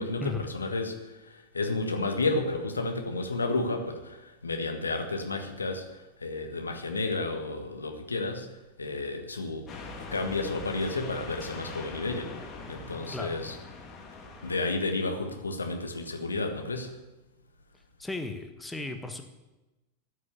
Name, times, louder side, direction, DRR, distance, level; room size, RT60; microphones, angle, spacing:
voice 1, 0.0-8.5 8.8-9.7 10.1-12.4 12.7-13.5 14.4-17.0, left 3 dB, 75° left, 4 dB, 1.6 m, -31 dB
sound 1, 9.7-14.7, left 3 dB, 25° left, 2.7 m, -42 dB
voice 2, 18.0-19.2, left 2 dB, 5° left, 6 dB, 1.3 m, -35 dB
13.0 x 6.6 x 9.4 m, 1.0 s
figure-of-eight pair, 90°, 0 cm